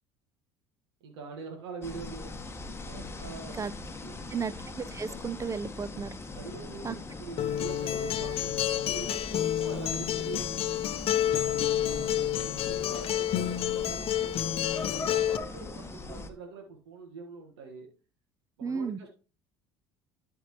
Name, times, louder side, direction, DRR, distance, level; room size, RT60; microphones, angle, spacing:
voice 1, 1.0-2.4 2.8-3.6 3.9-4.4 6.3-10.4 11.2-17.9 18.6-19.1, right 5 dB, 85° right, 1.6 m, -44 dB
sound 1, 1.8-16.3, left 3 dB, 20° left, 1.2 m, -41 dB
voice 2, 4.3-6.2 6.8-6.9 18.6-19.0, right 5 dB, 25° right, 0.6 m, -34 dB
Acoustic guitar, 7.4-15.4, left 11 dB, 45° left, 0.6 m, -29 dB
12.0 x 4.5 x 3.0 m
hypercardioid pair, 75°, 13 cm